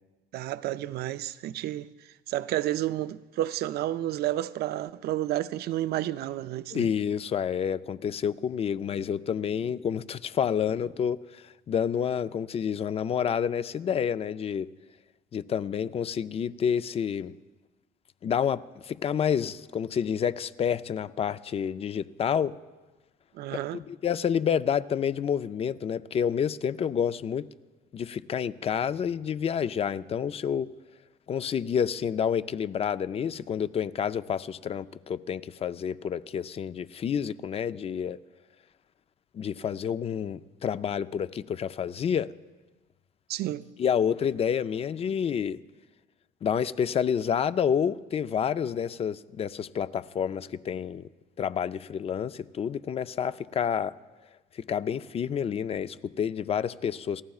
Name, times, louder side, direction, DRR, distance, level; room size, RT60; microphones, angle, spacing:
voice 1, 0.3-1.9 2.3-6.9 23.3-23.8 43.3-43.6, right 14 dB, 70° right, 0.5 m, -31 dB
voice 2, 6.7-14.7 15.3-17.3 18.2-22.6 23.7-27.5 27.9-30.7 31.3-38.2 39.3-42.3 43.8-45.6 46.4-51.1 51.4-53.9 54.5-57.2, left 8 dB, 35° left, 0.4 m, -29 dB
29.5 x 14.5 x 2.4 m
cardioid pair, 110°, 17 cm